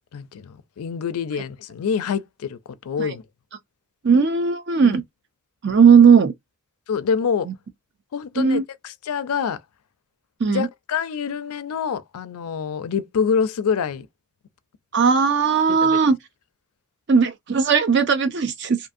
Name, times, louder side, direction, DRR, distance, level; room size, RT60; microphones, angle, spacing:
voice 1, 0.1-2.6 2.8-3.2 4.8-5.0 6.9-7.5 8.1-9.6 10.5-14.1 15.7-16.0, left 6 dB, 85° left, 0.4 m, -26 dB
voice 2, 4.0-5.0 5.6-6.3 8.4-8.6 10.4-10.7 14.9-16.2 17.1-18.8, right 6 dB, 50° right, 0.5 m, -17 dB
2.6 x 2.6 x 2.5 m
head